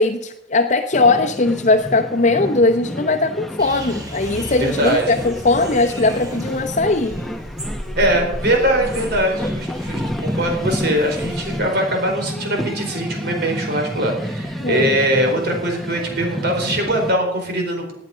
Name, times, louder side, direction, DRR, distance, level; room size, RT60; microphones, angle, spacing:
voice 1, 0.0-7.1 14.6-14.9, left 2 dB, 40° left, 4 dB, 0.9 m, -19 dB
sound 1, 0.9-17.1, equal, ahead, 1.1 m, -30 dB
sound 2, 3.6-11.6, equal, 20° right, 3.2 m, -34 dB
voice 2, 4.6-5.2 8.0-17.9, right 1 dB, 60° right, 2 dB, 4.6 m, -21 dB
19.0 x 9.6 x 5.1 m, 0.78 s
head